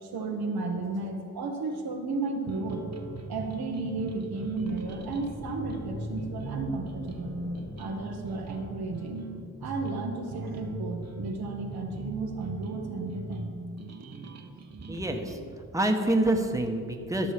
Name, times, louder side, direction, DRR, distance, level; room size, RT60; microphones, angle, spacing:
voice 1, 0.0-2.9 3.3-7.4 7.8-9.3 9.6-13.5, right 3 dB, 85° right, 2 dB, 1.2 m, -33 dB
sound 1, 2.5-15.4, right 3 dB, 45° right, 1.0 m, -40 dB
sound 2, 4.6-9.4, left 3 dB, 35° left, 0.8 m, -45 dB
voice 2, 14.9-15.4 15.7-17.3, right 1 dB, 10° right, 3 dB, 1.2 m, -26 dB
13.0 x 6.2 x 5.1 m, 2.3 s
cardioid pair, 45°, 36 cm